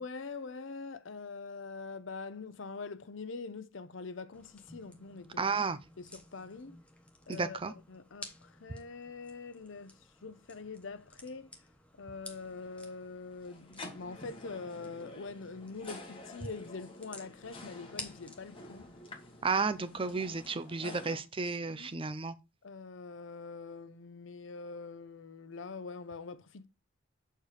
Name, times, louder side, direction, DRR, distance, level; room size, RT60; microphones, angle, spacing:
voice 1, 0.0-5.6 6.0-6.8 7.3-11.5 12.0-18.9 20.8-21.2 21.7-21.9 22.6-26.7, left 4 dB, 70° left, 0.7 m, -44 dB
sound 1, 4.3-20.5, left 2 dB, 5° left, 1.0 m, -54 dB
voice 2, 5.4-5.8 7.3-7.7 19.4-22.3, right 4 dB, 25° right, 0.5 m, -32 dB
sound 2, 12.3-21.2, left 2 dB, 30° left, 1.6 m, -50 dB
6.6 x 4.4 x 4.8 m
head